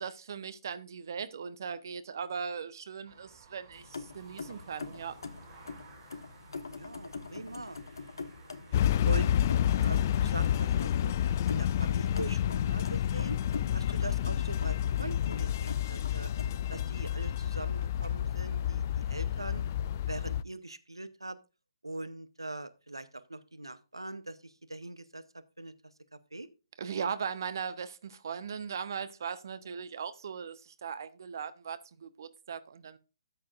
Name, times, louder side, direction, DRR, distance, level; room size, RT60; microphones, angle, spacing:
voice 1, 0.0-5.2 26.8-33.0, right 6 dB, 50° right, 1.1 m, -38 dB
sound 1, 3.0-8.9, right 4 dB, 30° right, 4.1 m, -56 dB
sound 2, 3.7-17.2, left 4 dB, 60° left, 1.3 m, -44 dB
voice 2, 6.7-7.8 9.0-9.3 9.7-11.1 11.5-13.4 13.7-16.3 16.7-19.6 20.1-21.4 21.8-25.2 25.6-25.7 26.1-26.5, right 2 dB, 80° right, 0.9 m, -42 dB
sound 3, 8.7-20.4, left 10 dB, 35° left, 0.4 m, -29 dB
13.5 x 8.7 x 2.5 m
figure-of-eight pair, 135°, 2 cm